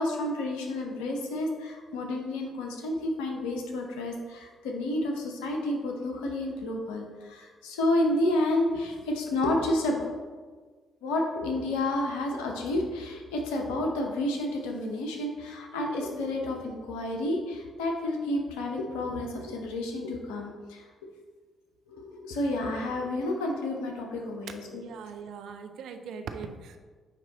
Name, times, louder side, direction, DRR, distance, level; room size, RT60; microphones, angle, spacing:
voice 1, 0.0-10.0 11.0-20.9 21.9-24.8, left 1 dB, 75° left, 2 dB, 0.8 m, -30 dB
voice 2, 24.8-26.8, right 6 dB, 65° right, 6 dB, 0.5 m, -40 dB
8.9 x 3.0 x 3.9 m, 1.5 s
figure-of-eight pair, 40°, 0 cm